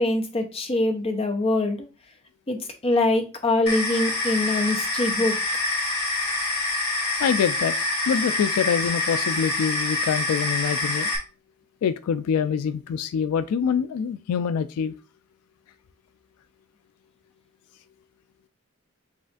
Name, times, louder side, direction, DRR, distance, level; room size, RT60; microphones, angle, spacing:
voice 1, 0.0-1.8 2.5-2.6 2.8-5.3, left 2 dB, 25° left, 0.7 m, -23 dB
sound 1, 3.7-11.2, left 2 dB, 40° left, 1.4 m, -26 dB
voice 2, 7.2-7.8 8.1-11.1 11.8-14.9, left 7 dB, 85° left, 0.3 m, -25 dB
7.3 x 2.5 x 2.4 m
head